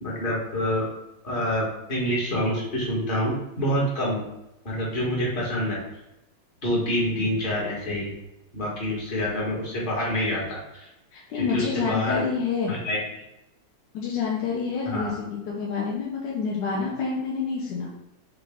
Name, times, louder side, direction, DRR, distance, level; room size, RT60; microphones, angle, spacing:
voice 1, 0.0-0.9 1.2-4.2 4.6-5.8 6.6-8.1 8.5-10.9 11.3-12.2 12.7-13.0 14.8-15.1, equal, 30° left, -5 dB, 1.2 m, -27 dB
voice 2, 11.1-12.7 13.9-17.9, left 5 dB, 65° left, -4 dB, 1.2 m, -28 dB
5.8 x 2.4 x 3.4 m, 0.89 s
omnidirectional pair, 2.3 m